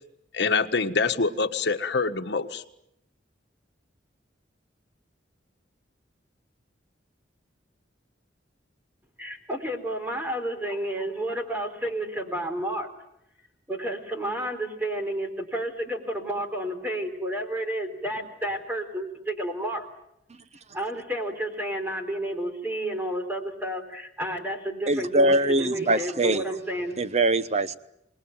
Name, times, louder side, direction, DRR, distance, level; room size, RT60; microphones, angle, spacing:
voice 1, 0.3-2.6, left 4 dB, 65° left, 1.5 m, -25 dB
voice 2, 9.2-12.9 13.7-19.9 20.7-27.0, right 1 dB, 10° right, 3.7 m, -31 dB
voice 3, 24.9-26.4 27.0-27.8, right 2 dB, 35° right, 1.0 m, -22 dB
27.0 x 20.5 x 9.1 m
head